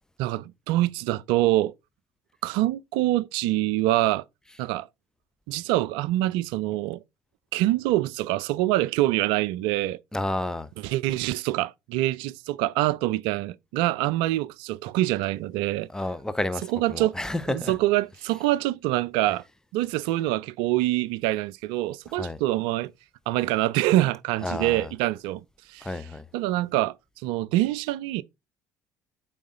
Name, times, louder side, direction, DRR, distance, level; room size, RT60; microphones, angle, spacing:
voice 1, 0.2-1.7 2.4-4.2 4.6-4.9 5.5-7.0 7.5-10.0 10.8-15.9 16.7-17.2 17.5-19.4 19.7-22.9 23.3-25.4 25.7-25.9 26.3-28.2, right 16 dB, 65° right, 0.4 m, -25 dB
voice 2, 10.1-10.7 15.9-17.7 22.1-22.4 24.4-24.9 25.8-26.2, left 1 dB, 5° left, 0.8 m, -30 dB
8.5 x 3.8 x 3.8 m
figure-of-eight pair, 60°, 9 cm